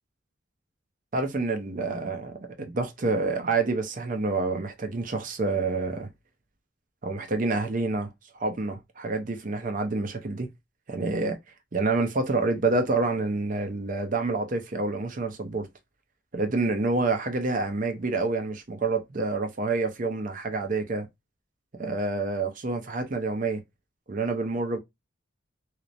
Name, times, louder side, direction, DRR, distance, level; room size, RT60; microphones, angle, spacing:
voice 1, 1.1-6.1 7.0-10.5 10.9-11.4 11.7-15.7 16.3-21.1 21.8-23.6 24.1-24.8, right 3 dB, 40° right, 0.5 m, -28 dB
3.0 x 2.0 x 2.4 m
head